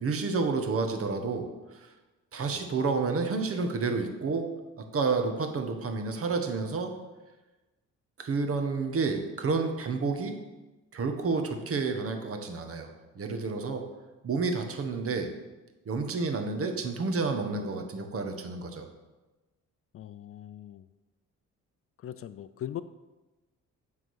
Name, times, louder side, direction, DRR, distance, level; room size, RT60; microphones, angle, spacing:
voice 1, 0.0-1.9 2.3-4.5 4.8-6.9 8.2-10.4 10.9-12.9 13.1-13.8 14.2-15.3 15.9-18.9, right 4 dB, 50° right, 5 dB, 1.2 m, -30 dB
voice 2, 19.9-20.8 22.0-22.8, left 11 dB, 50° left, 13 dB, 0.4 m, -40 dB
9.1 x 3.8 x 6.3 m, 1.1 s
cardioid pair, 90°, 30 cm